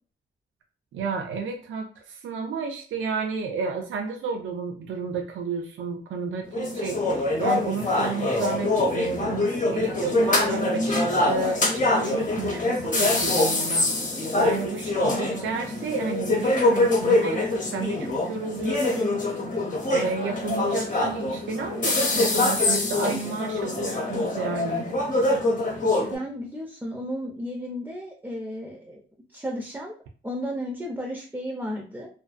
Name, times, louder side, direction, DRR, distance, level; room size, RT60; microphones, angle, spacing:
voice 1, 0.9-13.9 14.4-19.2 19.9-24.9, right 4 dB, 75° right, 3 dB, 0.4 m, -31 dB
sound 1, 6.5-26.2, left 2 dB, 40° left, 0.7 m, -24 dB
voice 2, 26.1-29.0 29.3-29.9 30.2-32.1, equal, 10° right, 0 dB, 0.4 m, -33 dB
2.4 x 2.2 x 2.4 m, 0.41 s
wide cardioid pair, 120°, 20 cm